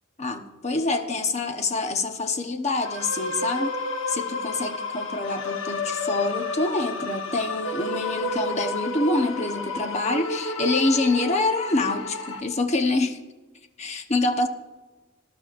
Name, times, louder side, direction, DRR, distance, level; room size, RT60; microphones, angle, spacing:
voice 1, 0.2-3.8 4.1-13.2 13.8-14.5, left 2 dB, 35° left, 6 dB, 1.0 m, -26 dB
sound 1, 2.8-12.4, left 2 dB, 75° left, 1.3 m, -31 dB
20.0 x 12.0 x 2.6 m, 1.2 s
head